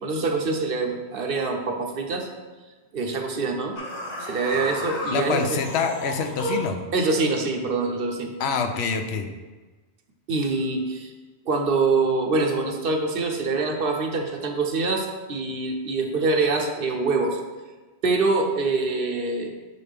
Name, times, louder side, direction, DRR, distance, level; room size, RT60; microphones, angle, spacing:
voice 1, 0.0-2.3 2.9-3.8 4.2-5.6 6.9-8.3 10.3-11.1 11.5-17.4 18.0-19.5, right 3 dB, 60° right, 3 dB, 0.9 m, -25 dB
sound 1, 3.8-6.8, equal, 40° left, 1.1 m, -32 dB
voice 2, 5.1-6.8 8.4-9.3, left 5 dB, 80° left, 6 dB, 0.8 m, -26 dB
6.7 x 4.1 x 3.4 m, 1.2 s
omnidirectional pair, 1.1 m